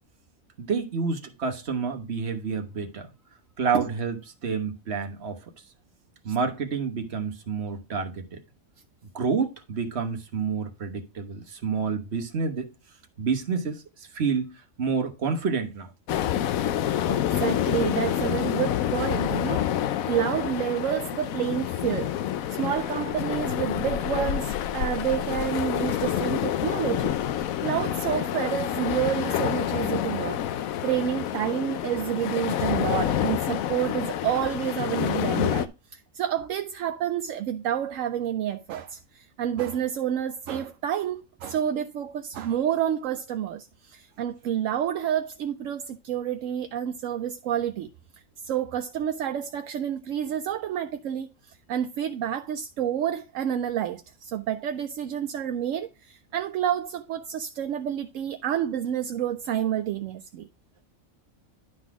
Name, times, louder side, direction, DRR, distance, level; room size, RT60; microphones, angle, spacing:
voice 1, 0.6-3.1 3.6-5.4 6.2-8.4 9.1-12.7 13.2-15.9, right 5 dB, 50° right, 1.4 m, -29 dB
sound 1, 16.1-35.7, left 11 dB, 85° left, 1.1 m, -28 dB
voice 2, 17.1-19.7 20.1-22.2 22.5-47.9 48.4-60.5, right 10 dB, 75° right, 1.0 m, -29 dB
11.0 x 4.0 x 4.7 m
omnidirectional pair, 1.4 m